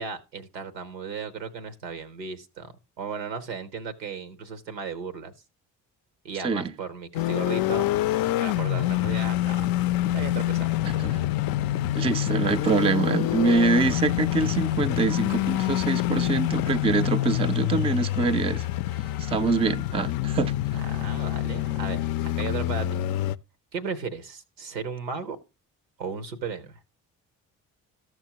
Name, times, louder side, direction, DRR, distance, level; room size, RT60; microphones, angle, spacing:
voice 1, 0.0-5.3 6.2-9.7 10.1-10.7 20.7-22.1 22.4-23.0 23.7-25.4 26.0-26.8, right 5 dB, 90° right, 0.7 m, -35 dB
sound 1, 7.1-23.4, left 14 dB, 50° left, 0.4 m, -26 dB
voice 2, 10.9-11.2 11.9-18.7 19.2-20.5, right 4 dB, 15° right, 0.4 m, -25 dB
14.0 x 6.0 x 2.8 m
figure-of-eight pair, 40°, 49 cm